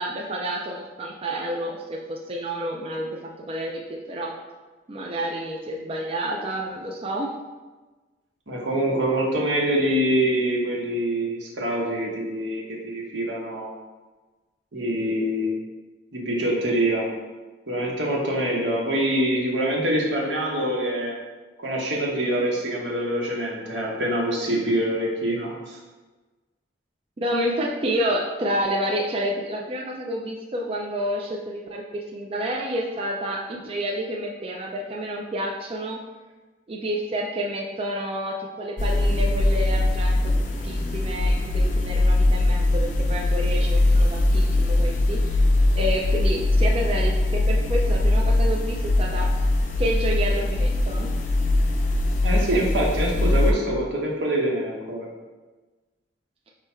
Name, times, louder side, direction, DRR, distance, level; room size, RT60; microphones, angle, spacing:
voice 1, 0.0-4.3 4.9-7.3 27.2-36.0 36.7-45.4 45.8-49.3 49.8-51.1, equal, 30° right, -2 dB, 0.4 m, -29 dB
voice 2, 8.5-13.7 14.7-15.5 16.1-17.1 17.7-21.1 21.6-25.8 52.2-55.1, right 1 dB, 80° right, -3 dB, 1.0 m, -25 dB
sound 1, 38.8-53.5, left 2 dB, 45° left, 0.5 m, -21 dB
4.9 x 2.3 x 4.2 m, 1.3 s
head